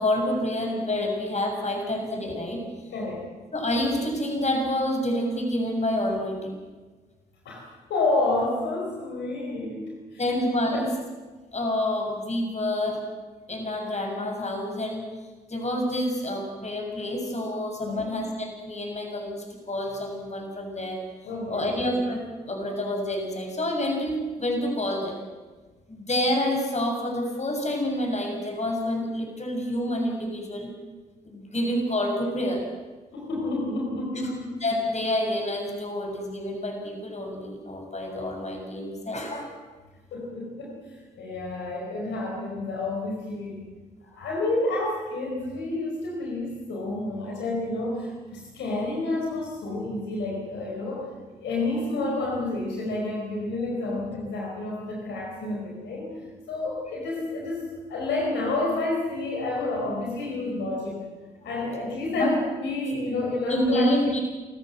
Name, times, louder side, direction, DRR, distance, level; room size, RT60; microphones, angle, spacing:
voice 1, 0.0-2.6 3.5-6.5 10.2-10.9 11.5-13.0 13.5-15.1 15.5-21.0 21.5-25.2 25.9-30.7 31.2-32.6 34.6-39.5 61.4-61.5 62.2-62.3 63.5-64.2, left 1 dB, 35° left, 2 dB, 7.1 m, -28 dB
voice 2, 2.9-3.2 7.4-10.4 10.7-10.8 17.8-18.1 21.2-21.7 33.1-34.6 40.1-40.8 41.2-43.6 44.0-51.1 51.4-56.1 56.5-61.0 61.4-63.9, left 2 dB, 75° left, -2 dB, 4.7 m, -29 dB
28.0 x 15.0 x 7.8 m, 1.3 s
hypercardioid pair, 40°, 19 cm